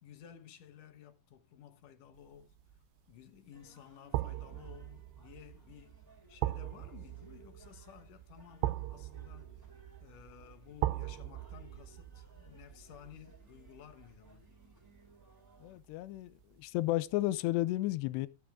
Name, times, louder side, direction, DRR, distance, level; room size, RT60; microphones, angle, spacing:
voice 1, 0.0-2.6 3.1-9.7 10.0-14.5, left 10 dB, 65° left, 2.2 m, -55 dB
sound 1, 2.4-2.7 4.1-15.1 15.5-15.6, right 15 dB, 80° right, 2.9 m, -40 dB
sound 2, 3.5-15.8, right 2 dB, 5° right, 2.3 m, -63 dB
voice 2, 15.6-16.3 16.6-18.3, left 17 dB, 80° left, 2.7 m, -32 dB
14.0 x 9.4 x 3.7 m
omnidirectional pair, 5.2 m